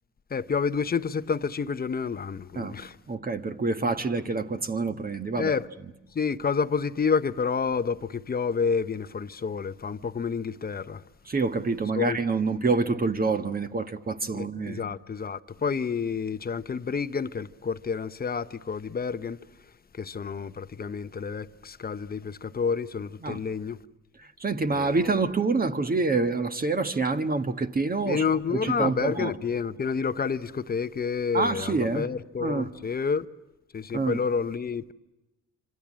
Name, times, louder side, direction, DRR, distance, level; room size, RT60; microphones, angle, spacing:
voice 1, 0.3-3.0 5.4-5.7 6.1-11.0 11.9-12.2 14.3-19.4 20.0-23.8 24.7-25.0 28.1-33.3 33.7-34.9, left 5 dB, 30° left, 0.9 m, -29 dB
voice 2, 3.1-5.5 11.3-14.8 23.2-23.4 24.4-28.2 28.5-29.3 31.3-32.1 32.4-32.7 33.9-34.2, right 3 dB, 30° right, 1.4 m, -27 dB
27.0 x 26.5 x 7.5 m
cardioid pair, 90°, 30 cm